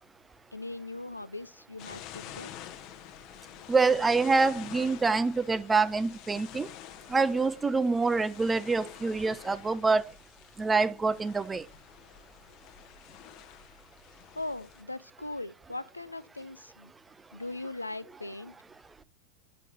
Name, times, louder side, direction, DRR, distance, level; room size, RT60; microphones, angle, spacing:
voice 1, 0.5-2.5 14.4-16.9 17.3-18.6, left 2 dB, 85° left, 0.4 m, -39 dB
sound 1, 1.8-14.8, left 11 dB, 40° left, 0.8 m, -48 dB
voice 2, 3.7-6.7 7.1-10.0 10.6-11.6, right 4 dB, 10° right, 0.3 m, -26 dB
7.5 x 5.2 x 3.8 m
figure-of-eight pair, 90°, 0 cm